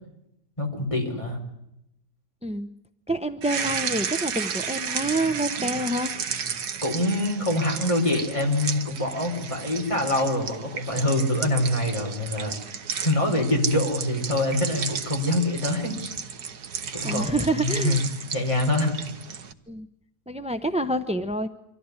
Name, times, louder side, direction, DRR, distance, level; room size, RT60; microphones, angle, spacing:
voice 1, 0.6-1.4 6.8-12.6 13.0-15.9 16.9-18.0 18.3-19.0, left 1 dB, 20° left, 1 dB, 4.4 m, -25 dB
voice 2, 3.1-6.1 17.0-18.0 19.7-19.9 20.3-21.5, right 1 dB, 10° right, 9 dB, 0.4 m, -27 dB
sound 1, 3.4-19.5, right 7 dB, 90° right, 1.8 m, -33 dB
25.0 x 14.5 x 9.8 m, 0.83 s
omnidirectional pair, 1.7 m